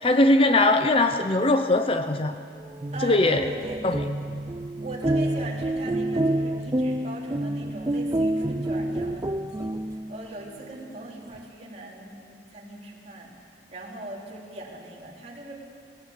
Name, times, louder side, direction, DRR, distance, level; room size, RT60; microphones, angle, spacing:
voice 1, 0.0-2.4 3.0-3.5 3.8-4.0, left 2 dB, 30° left, 8 dB, 0.7 m, -20 dB
sound 1, 2.6-10.3, right 1 dB, 20° right, 0.5 m, -28 dB
voice 2, 2.9-3.9 4.8-9.7 10.1-15.5, right 1 dB, 40° right, -3 dB, 3.6 m, -40 dB
18.5 x 18.0 x 8.0 m, 2.3 s
head